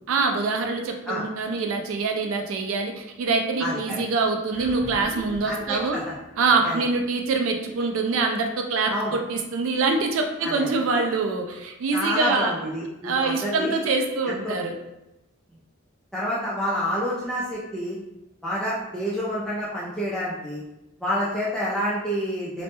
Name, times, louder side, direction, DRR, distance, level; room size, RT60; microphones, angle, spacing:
voice 1, 0.1-6.0 6.4-12.5 13.0-14.8, right 4 dB, 85° right, 4 dB, 0.3 m, -25 dB
voice 2, 3.6-4.0 5.4-6.0 6.6-6.8 8.9-9.2 10.4-11.0 11.9-13.8 14.3-14.6 16.1-18.0 18.4-20.6 21.0-22.6, equal, 5° left, -8 dB, 0.3 m, -28 dB
sound 1, 4.5-9.1, equal, 35° right, 0.7 m, -44 dB
2.1 x 2.1 x 2.9 m, 0.93 s
head